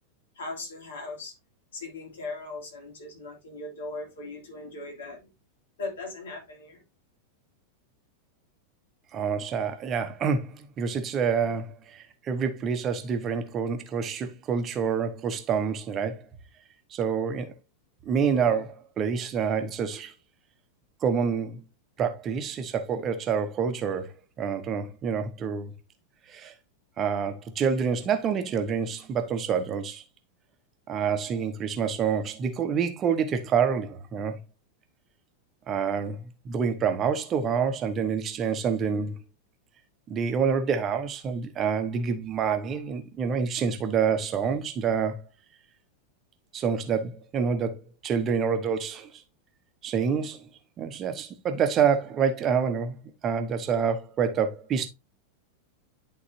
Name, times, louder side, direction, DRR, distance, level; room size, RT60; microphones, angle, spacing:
voice 1, 0.3-1.4 1.7-5.3 5.8-6.8, left 3 dB, 60° left, 2.8 m, -38 dB
voice 2, 9.1-16.2 16.9-17.5 18.0-20.1 21.0-21.6 22.0-24.1 24.4-25.7 26.3-26.5 27.0-30.0 30.9-34.4 35.7-39.1 40.1-45.2 46.5-49.1 49.8-50.4 50.8-54.9, right 6 dB, 30° right, 1.0 m, -27 dB
11.0 x 3.9 x 2.8 m
figure-of-eight pair, 90°, 0 cm